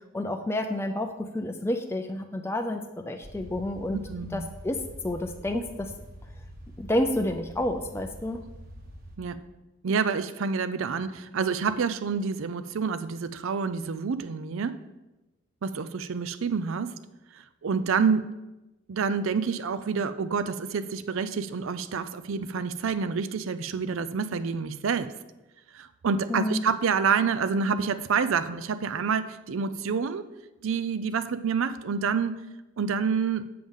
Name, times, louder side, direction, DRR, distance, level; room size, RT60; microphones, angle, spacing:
voice 1, 0.1-4.0 4.3-4.8 5.0-5.9 6.8-8.4 26.3-26.6, left 1 dB, 10° left, 5 dB, 0.4 m, -29 dB
sound 1, 3.2-9.2, equal, 45° right, 1.3 m, -45 dB
voice 2, 3.9-4.5 9.2-9.4 9.8-14.8 15.6-16.9 17.6-18.3 18.9-25.1 25.7-30.3 30.6-32.4 32.8-33.5, right 5 dB, 70° right, 12 dB, 0.4 m, -28 dB
7.6 x 7.1 x 3.6 m, 1.0 s
head